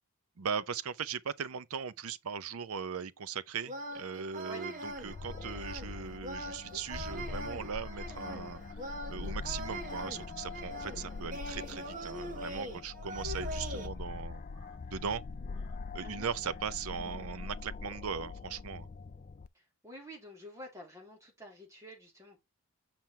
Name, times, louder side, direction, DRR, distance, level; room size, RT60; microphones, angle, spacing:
voice 1, 0.4-14.4 14.9-15.2 15.9-18.9, right 6 dB, 70° right, 0.6 m, -39 dB
sound 1, 3.7-13.9, right 1 dB, 35° right, 1.3 m, -42 dB
sound 2, 4.9-19.5, left 4 dB, 35° left, 0.4 m, -43 dB
voice 2, 16.0-16.3 19.5-22.4, equal, 15° right, 3.2 m, -49 dB
7.4 x 6.0 x 3.2 m
head